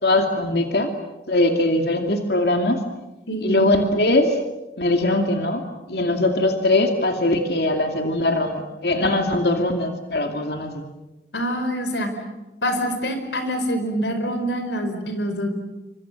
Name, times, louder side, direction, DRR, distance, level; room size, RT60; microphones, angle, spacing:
voice 1, 0.0-0.9 1.3-2.8 3.4-4.3 4.8-5.6 5.9-10.8, left 2 dB, 70° left, 4 dB, 2.5 m, -21 dB
voice 2, 3.3-3.6 11.3-12.1 12.6-15.5, equal, 90° left, 7 dB, 5.0 m, -25 dB
29.0 x 25.5 x 7.7 m, 1.0 s
head